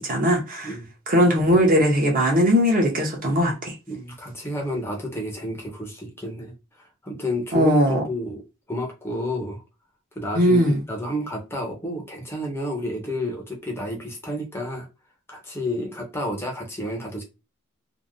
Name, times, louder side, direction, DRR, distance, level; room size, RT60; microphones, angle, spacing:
voice 1, 0.0-0.7 1.1-3.7 7.5-8.0 10.3-10.8, equal, 45° right, 0.8 m, -19 dB
voice 2, 3.9-6.5 7.0-8.4 8.7-9.6 10.2-14.9 15.3-17.2, left 1 dB, 10° left, 0.5 m, -30 dB
2.7 x 2.1 x 2.5 m
head